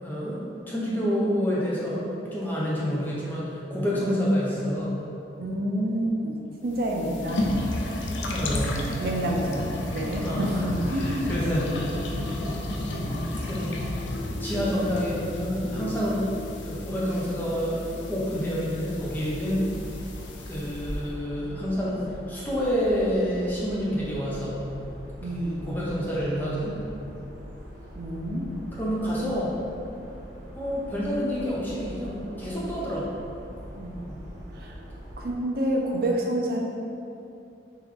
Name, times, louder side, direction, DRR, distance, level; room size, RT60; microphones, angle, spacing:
voice 1, 0.0-5.0 8.1-8.9 10.2-10.7 10.9-12.0 13.2-13.7 14.3-16.3 16.6-19.7 20.5-24.7 25.6-26.7 28.7-29.5 30.5-33.1, equal, 10° left, -7 dB, 0.6 m, -28 dB
voice 2, 4.0-4.8 5.4-6.4 6.6-7.4 7.7-8.2 9.0-11.8 25.2-25.7 27.9-28.5 33.7-34.2 34.5-34.7 35.2-36.6, right 1 dB, 55° right, -1 dB, 0.5 m, -28 dB
sound 1, 6.7-21.0, left 1 dB, 85° left, 0.4 m, -32 dB
sound 2, 18.9-35.4, equal, 85° right, 1.0 m, -42 dB
3.6 x 3.1 x 3.2 m, 2.7 s
head